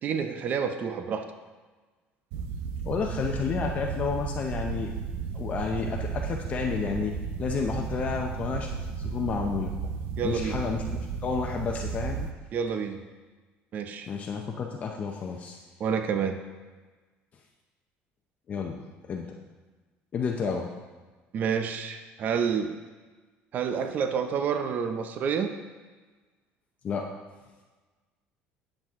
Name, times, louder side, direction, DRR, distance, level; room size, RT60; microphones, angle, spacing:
voice 1, 0.0-1.2 10.2-10.6 12.5-13.0 13.7-14.1 15.8-16.4 21.3-22.7 23.5-25.5, right 6 dB, 45° right, 7 dB, 0.6 m, -28 dB
sound 1, 2.3-12.3, right 6 dB, 85° right, 0.7 m, -34 dB
voice 2, 2.8-4.9 5.3-9.7 10.2-12.3 14.1-15.6 18.5-18.7 19.1-19.3 20.1-20.7 26.8-27.1, left 5 dB, 35° left, 1 dB, 0.7 m, -31 dB
10.0 x 7.5 x 3.7 m, 1.3 s
cardioid pair, 140°, 4 cm